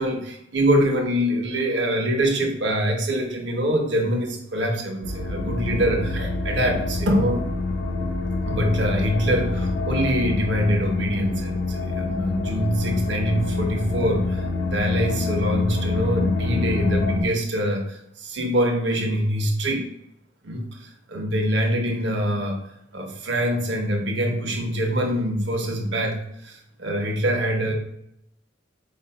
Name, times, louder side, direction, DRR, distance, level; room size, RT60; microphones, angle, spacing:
voice 1, 0.0-7.4 8.5-19.8 20.4-22.6 22.9-27.7, equal, 70° right, 1 dB, 0.9 m, -24 dB
sound 1, 5.0-17.2, left 3 dB, 65° left, 0.6 m, -26 dB
4.7 x 2.5 x 4.2 m, 0.77 s
head